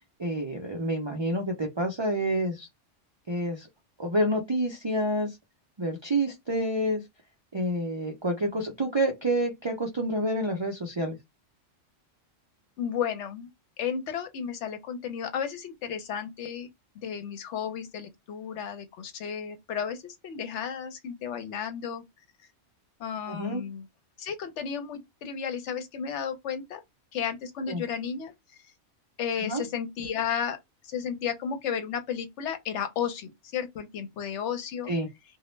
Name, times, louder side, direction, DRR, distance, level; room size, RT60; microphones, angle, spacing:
voice 1, 0.2-2.7 3.3-3.7 4.0-5.4 5.8-7.0 7.5-11.2 23.3-23.6 27.7-27.8 29.4-29.6 34.9-35.1, right 1 dB, 50° right, 0.3 m, -28 dB
voice 2, 12.8-13.5 13.8-16.7 16.9-22.0 23.0-23.9 24.2-26.8 27.1-28.3 29.2-30.6 30.8-34.9, left 7 dB, 75° left, 0.9 m, -33 dB
2.2 x 2.0 x 3.0 m
omnidirectional pair, 1.2 m